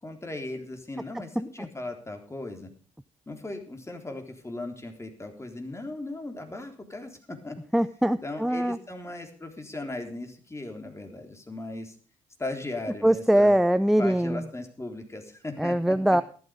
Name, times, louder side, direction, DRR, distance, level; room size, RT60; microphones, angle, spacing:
voice 1, 0.0-2.7 3.3-7.6 8.2-12.0 12.4-13.6 14.0-16.2, left 2 dB, 20° left, 4 dB, 3.7 m, -37 dB
voice 2, 7.7-8.8 13.0-14.5 15.6-16.2, right 1 dB, ahead, 15 dB, 0.6 m, -22 dB
14.0 x 12.0 x 5.2 m, 0.42 s
hypercardioid pair, 45°, 15 cm